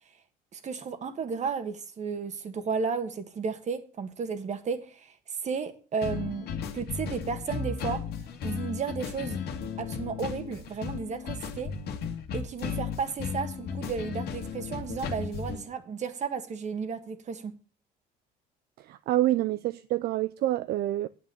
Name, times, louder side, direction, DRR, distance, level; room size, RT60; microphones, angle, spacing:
voice 1, 0.5-5.1 5.4-6.5 6.7-8.0 8.4-9.4 9.8-11.7 12.3-17.5, right 5 dB, 45° right, 1.6 m, -33 dB
sound 1, 6.0-15.6, left 6 dB, 75° left, 1.7 m, -35 dB
voice 2, 18.8-21.1, right 14 dB, 65° right, 0.5 m, -27 dB
9.2 x 8.1 x 6.9 m
cardioid pair, 110°, 17 cm